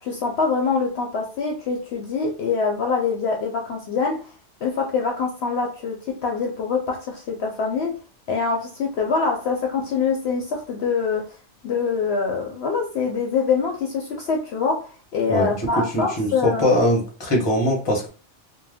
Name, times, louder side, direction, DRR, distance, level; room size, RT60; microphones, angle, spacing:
voice 1, 0.0-4.3 4.6-7.9 8.3-11.4 11.6-16.7, left 5 dB, 65° left, 1 dB, 0.7 m, -24 dB
voice 2, 15.3-18.1, left 1 dB, 25° left, 0 dB, 0.7 m, -22 dB
2.4 x 2.1 x 3.3 m, 0.38 s
omnidirectional pair, 1.3 m